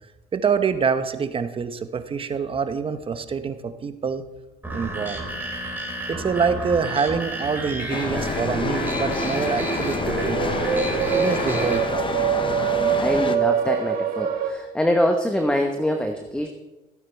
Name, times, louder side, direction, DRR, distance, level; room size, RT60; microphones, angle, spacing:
voice 1, 0.3-4.2 4.7-5.2 6.1-10.6 11.1-12.1, right 6 dB, 30° right, 10 dB, 1.0 m, -26 dB
sound 1, 4.6-11.8, right 1 dB, 10° right, 3.8 m, -31 dB
sound 2, 7.9-13.4, left 5 dB, 30° left, 0.8 m, -29 dB
sound 3, 8.4-14.5, right 8 dB, 60° right, 1.9 m, -25 dB
voice 2, 12.9-16.5, left 1 dB, 5° left, 4 dB, 1.0 m, -24 dB
15.5 x 8.8 x 4.5 m, 1.1 s
cardioid pair, 110°, 17 cm